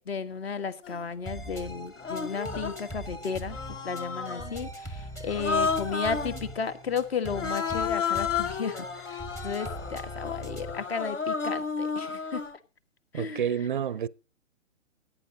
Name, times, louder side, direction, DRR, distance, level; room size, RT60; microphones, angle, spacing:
voice 1, 0.0-3.6 3.8-12.4 13.1-13.4, left 5 dB, 50° left, 1.5 m, -34 dB
Human voice, 0.8-1.0 2.0-2.9 3.5-4.6 5.3-6.4 7.3-12.6, left 5 dB, 70° left, 1.3 m, -32 dB
sound 1, 1.3-10.9, right 1 dB, 10° left, 0.9 m, -41 dB
voice 2, 13.1-14.1, right 8 dB, 40° right, 0.5 m, -29 dB
16.5 x 9.1 x 3.8 m
figure-of-eight pair, 125°, 39 cm